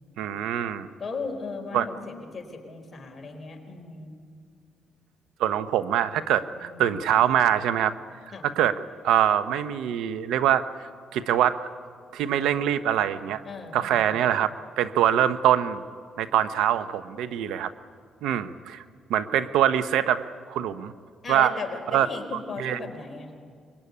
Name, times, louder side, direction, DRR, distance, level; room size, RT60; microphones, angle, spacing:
voice 1, 0.2-0.9 1.7-1.9 5.4-7.9 8.4-10.6 11.1-11.6 12.1-13.4 13.7-14.5 14.8-15.8 16.2-17.7 18.2-18.8 19.1-20.9 21.3-21.5 21.9-22.1 22.6-22.9, right 10 dB, 90° right, 12 dB, 1.0 m, -24 dB
voice 2, 1.0-4.2 6.5-6.9 8.3-8.5 13.4-14.2 21.2-23.3, left 4 dB, 30° left, 2 dB, 4.5 m, -37 dB
26.0 x 22.0 x 9.9 m, 2.1 s
cardioid pair, 90°, 0 cm